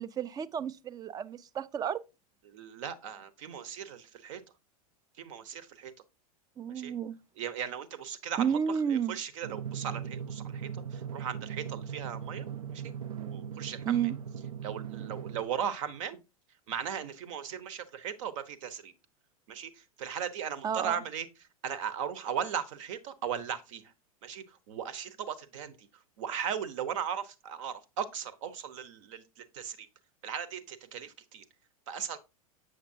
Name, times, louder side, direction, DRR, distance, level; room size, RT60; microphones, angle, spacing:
voice 1, 0.0-2.0 6.6-7.2 8.4-9.2 13.9-14.1 20.6-21.0, right 8 dB, 20° right, 0.4 m, -31 dB
voice 2, 2.4-4.4 5.2-5.9 6.7-6.9 7.4-12.8 13.1-14.1 14.6-16.2 16.7-18.9 19.5-21.3 21.6-23.9 24.2-25.9 26.2-29.9 30.2-31.4 31.9-32.2, right 8 dB, 60° right, 0.9 m, -37 dB
Drum, 9.4-15.4, right 8 dB, 75° right, 0.6 m, -39 dB
7.6 x 6.6 x 2.6 m
figure-of-eight pair, 90°, 19 cm